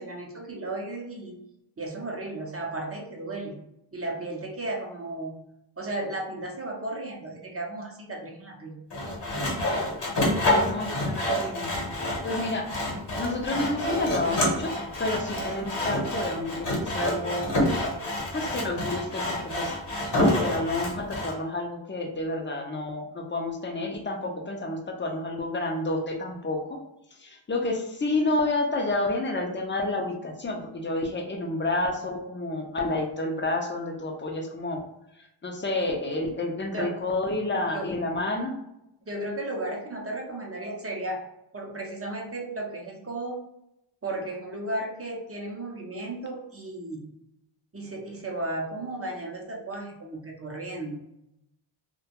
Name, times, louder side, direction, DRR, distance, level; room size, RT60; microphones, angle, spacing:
voice 1, 0.0-1.4 1.8-3.6 3.9-5.4 5.8-8.8 36.7-36.9 37.7-37.9 39.0-41.2 41.5-43.4 44.0-47.1 47.7-51.0, right 2 dB, 30° right, 1 dB, 0.5 m, -34 dB
Sawing, 8.9-21.3, left 1 dB, 55° left, 0.9 m, -28 dB
voice 2, 10.4-11.7 12.2-12.9 13.2-17.5 18.3-19.8 20.1-26.8 27.1-34.8 35.1-38.5, left 2 dB, 25° left, 2 dB, 0.4 m, -30 dB
2.2 x 2.2 x 2.8 m, 0.84 s
wide cardioid pair, 95°, 49 cm